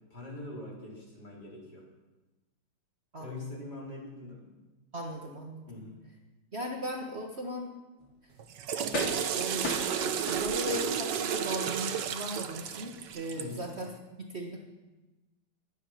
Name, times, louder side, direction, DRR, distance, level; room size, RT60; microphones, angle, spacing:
voice 1, 0.1-1.9 3.2-4.5 5.7-6.0 13.3-13.7, left 2 dB, 55° left, -3 dB, 4.7 m, -43 dB
voice 2, 4.9-5.6 6.5-7.7 9.3-13.9 14.2-14.6, equal, 35° right, 1 dB, 1.6 m, -37 dB
sound 1, 8.0-8.1 8.9-9.4 9.6-10.9 11.4-11.5, left 2 dB, 70° left, 3.3 m, -36 dB
Water / Toilet flush, 8.4-13.6, right 8 dB, 65° right, 1.4 m, -32 dB
20.5 x 10.0 x 5.9 m, 1.1 s
omnidirectional pair, 2.1 m